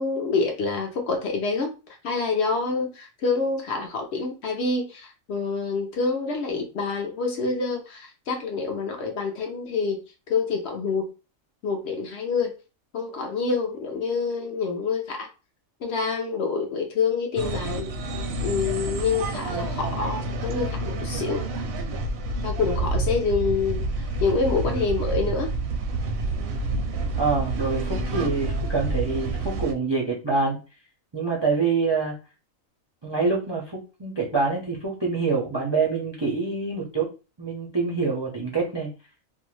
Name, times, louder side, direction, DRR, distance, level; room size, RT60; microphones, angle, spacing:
voice 1, 0.0-1.7 2.0-10.0 10.3-11.1 11.6-12.5 12.9-15.3 15.8-18.1 18.4-21.4 22.4-23.8 24.2-25.5, left 4 dB, 65° left, 3 dB, 0.7 m, -27 dB
sound 1, 17.4-29.7, right 2 dB, 65° right, 0.7 m, -28 dB
voice 2, 27.1-30.6 31.1-32.1 33.0-37.1 37.4-38.9, right 4 dB, 40° right, -2 dB, 0.4 m, -26 dB
2.6 x 2.2 x 3.0 m, 0.32 s
omnidirectional pair, 1.4 m